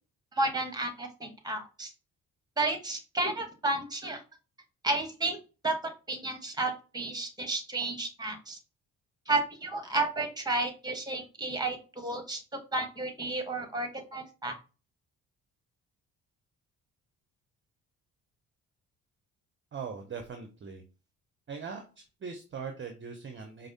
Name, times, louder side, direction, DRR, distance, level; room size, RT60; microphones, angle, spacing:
voice 1, 0.4-1.9 2.6-4.2 4.8-5.4 5.6-5.7 6.1-8.6 9.3-12.4 12.7-14.5, right 2 dB, 10° right, 6 dB, 1.1 m, -32 dB
voice 2, 19.7-20.8 21.5-21.8 22.2-23.7, right 5 dB, 30° right, 5 dB, 0.6 m, -40 dB
4.7 x 2.0 x 2.7 m, 0.33 s
hypercardioid pair, 50°, 38 cm